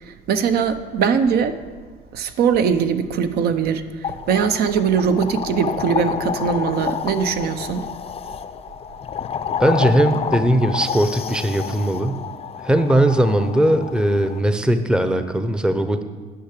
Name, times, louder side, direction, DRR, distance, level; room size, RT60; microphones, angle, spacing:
voice 1, 0.1-1.6 2.1-7.8, right 6 dB, 70° right, 10 dB, 0.8 m, -21 dB
sound 1, 4.0-14.4, left 7 dB, 35° left, 0.5 m, -29 dB
voice 2, 9.6-12.2 12.6-16.0, right 1 dB, 5° right, 9 dB, 0.6 m, -19 dB
10.0 x 5.8 x 8.2 m, 1.4 s
cardioid pair, 110°, 17 cm